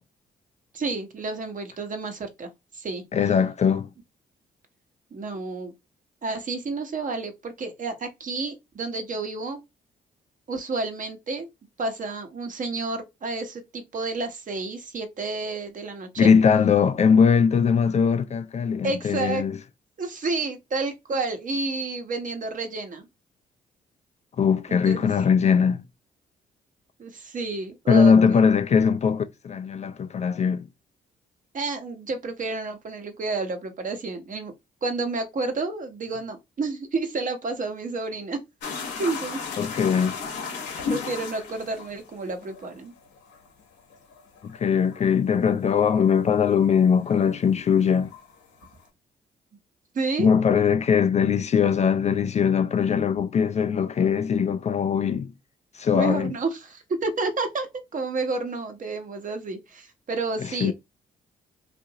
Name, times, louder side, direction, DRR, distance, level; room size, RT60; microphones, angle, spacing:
voice 1, 0.7-2.5 2.7-3.0 5.1-5.7 6.2-9.6 10.5-11.5 11.8-16.3 18.8-19.4 20.0-23.1 24.7-25.1 27.0-28.1 31.5-34.5 34.8-38.4 39.0-39.4 40.9-42.9 49.9-50.3 55.9-57.7 57.9-60.7, right 3 dB, 45° right, 0.9 m, -30 dB
voice 2, 3.1-3.9 16.2-19.6 24.4-25.8 27.9-30.7 39.6-40.2 44.4-48.1 50.2-55.3 55.7-56.3 60.4-60.7, left 6 dB, 40° left, 0.4 m, -21 dB
sound 1, 38.6-47.1 47.4-48.8, left 5 dB, 80° left, 0.9 m, -35 dB
2.6 x 2.5 x 2.8 m
supercardioid pair, 55°, 18 cm